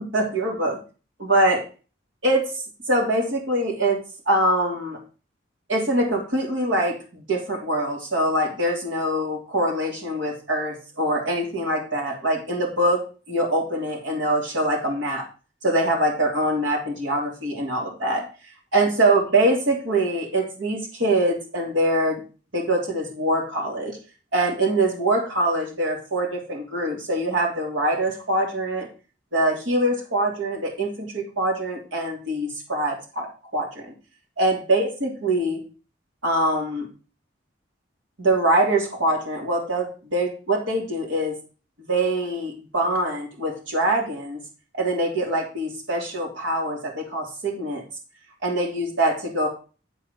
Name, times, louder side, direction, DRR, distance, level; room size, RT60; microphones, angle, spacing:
voice 1, 0.1-0.7 1.3-1.6 2.2-2.5 2.9-4.0 4.3-5.0 5.7-15.2 15.6-18.2 18.7-22.2 22.5-24.0 24.3-28.9 29.3-33.3 33.5-33.9 34.4-35.6 36.2-36.9 38.2-41.4 41.9-44.4 44.7-47.8 48.4-49.5, right 1 dB, 90° right, 0 dB, 3.0 m, -23 dB
10.5 x 4.7 x 5.4 m, 0.36 s
head